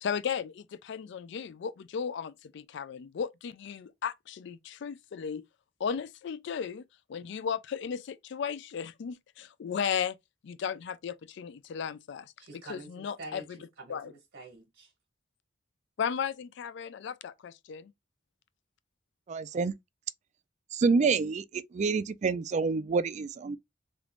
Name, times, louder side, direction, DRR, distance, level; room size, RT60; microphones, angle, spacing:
voice 1, 0.0-5.4 5.8-6.8 7.1-10.2 10.4-12.3 12.7-13.6 13.9-14.1 16.0-17.9, left 7 dB, 65° left, 0.4 m, -35 dB
voice 2, 12.4-14.9, right 2 dB, 75° right, 1.3 m, -47 dB
voice 3, 19.3-19.7 20.7-23.6, right 4 dB, 40° right, 0.3 m, -27 dB
3.3 x 2.5 x 3.1 m
head